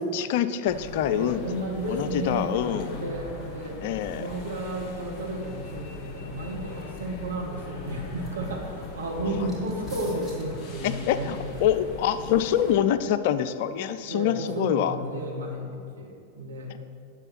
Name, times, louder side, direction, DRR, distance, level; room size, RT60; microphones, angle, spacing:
voice 1, 0.0-1.4 1.9-3.0 3.8-4.2 10.8-15.0, left 9 dB, 50° left, 13 dB, 0.4 m, -25 dB
sound 1, 0.7-12.8, left 3 dB, 25° left, 1.6 m, -40 dB
voice 2, 1.1-3.8 4.1-11.4 14.1-16.7, right 1 dB, 70° right, -2 dB, 2.1 m, -33 dB
sound 2, 5.8-12.3, left 2 dB, ahead, 2.6 m, -50 dB
9.9 x 7.2 x 6.1 m, 2.5 s
figure-of-eight pair, 90°, 0 cm